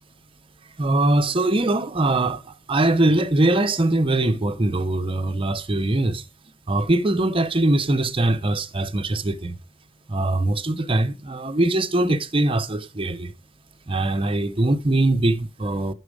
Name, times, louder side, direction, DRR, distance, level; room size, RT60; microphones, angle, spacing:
voice 1, 0.8-6.2 6.7-9.6 10.1-13.3 13.9-15.9, right 2 dB, 30° right, 0.7 m, -22 dB
9.7 x 6.6 x 4.9 m
head